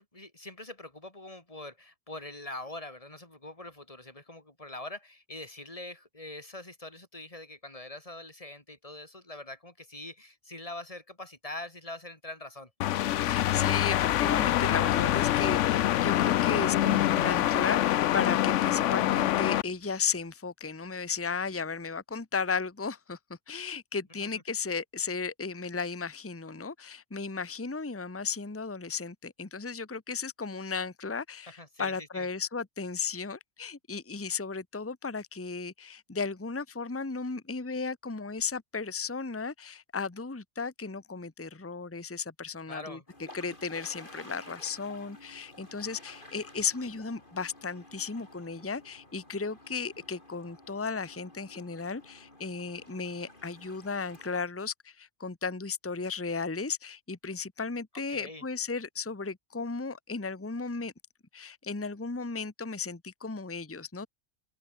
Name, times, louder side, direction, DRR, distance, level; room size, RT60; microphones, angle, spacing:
voice 1, 0.0-12.7 24.2-24.3 31.5-32.3 42.7-43.0 58.1-58.4, left 2 dB, 30° left, 3.8 m, -43 dB
sound 1, 12.8-19.6, left 13 dB, 80° left, 0.9 m, -25 dB
voice 2, 13.2-23.2 23.5-43.0 43.3-60.9 61.3-64.1, left 5 dB, 10° left, 1.0 m, -35 dB
sound 2, 43.1-54.4, left 1 dB, 45° left, 5.2 m, -52 dB
omnidirectional pair, 1.2 m